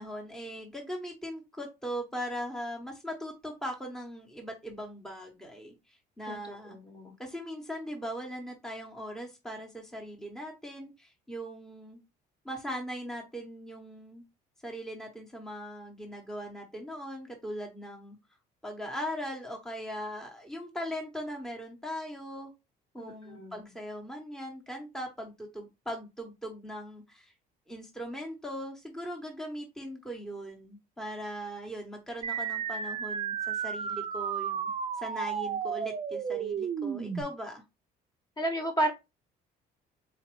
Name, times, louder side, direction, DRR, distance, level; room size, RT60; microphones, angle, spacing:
voice 1, 0.0-6.8 7.2-12.0 12.4-14.2 14.6-18.2 18.6-22.5 22.9-27.3 27.7-34.7 35.0-37.6, equal, 5° left, 0.8 m, -39 dB
voice 2, 6.2-7.1 23.0-23.6 38.4-38.9, right 1 dB, 25° left, 1.0 m, -32 dB
sound 1, 32.2-37.2, right 7 dB, 35° right, 0.4 m, -33 dB
4.0 x 2.5 x 3.0 m
cardioid pair, 110°, 17 cm